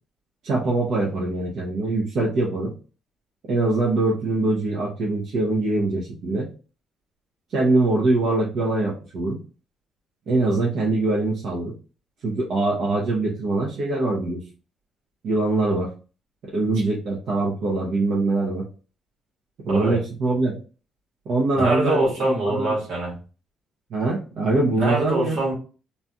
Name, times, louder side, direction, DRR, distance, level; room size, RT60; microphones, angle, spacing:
voice 1, 0.4-2.7 3.5-6.5 7.5-9.4 10.3-11.7 12.2-14.4 15.2-15.9 16.4-18.6 19.6-20.6 21.3-22.8 23.9-25.4, right 2 dB, 70° right, -5 dB, 0.9 m, -23 dB
voice 2, 21.6-23.1 24.7-25.5, right 2 dB, 90° right, -3 dB, 1.6 m, -24 dB
3.2 x 2.7 x 2.3 m, 0.36 s
cardioid pair, 90°, 0 cm